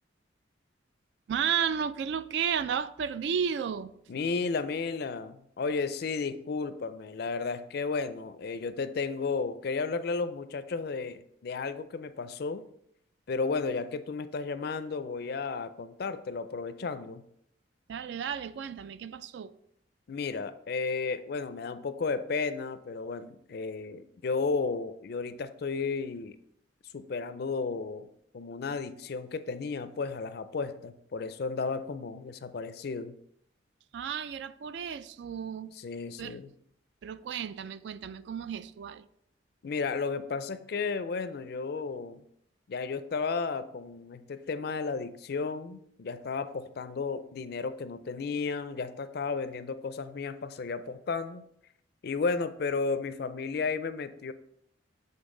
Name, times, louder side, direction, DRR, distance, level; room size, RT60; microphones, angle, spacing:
voice 1, 1.3-3.9 17.9-19.5 33.9-35.7 36.2-36.4 37.0-39.0, right 7 dB, 65° right, 0.3 m, -33 dB
voice 2, 4.1-12.6 13.3-17.2 20.1-26.4 26.9-28.1 28.3-33.1 35.8-36.5 39.6-42.2 42.7-51.5 52.0-54.3, left 4 dB, 55° left, 0.4 m, -33 dB
7.1 x 3.9 x 3.7 m
head